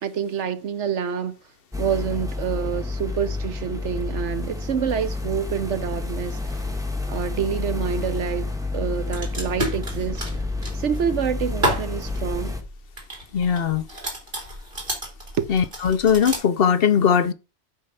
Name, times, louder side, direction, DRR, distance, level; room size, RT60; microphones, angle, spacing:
voice 1, 0.0-1.3 1.8-6.7 7.1-10.2 10.7-12.6 15.4-15.5, right 7 dB, 80° right, 1.2 m, -27 dB
sound 1, 1.7-12.6, left 3 dB, 5° right, 1.2 m, -30 dB
sound 2, 5.0-16.4, right 1 dB, 45° right, 3.3 m, -33 dB
voice 2, 13.3-13.8 15.5-17.3, left 7 dB, 60° left, 0.8 m, -19 dB
8.5 x 4.4 x 5.6 m
omnidirectional pair, 1.2 m